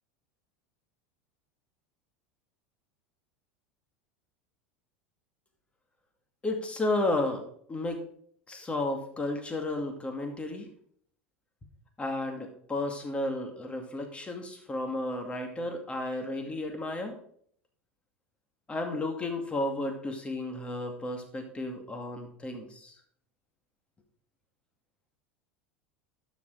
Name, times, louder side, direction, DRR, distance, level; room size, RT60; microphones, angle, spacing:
voice 1, 6.4-7.4 7.7-8.0 8.5-10.7 12.0-17.2 18.7-22.9, left 2 dB, 15° left, 4 dB, 2.2 m, -33 dB
12.0 x 6.3 x 4.7 m, 0.62 s
figure-of-eight pair, 80°, 7 cm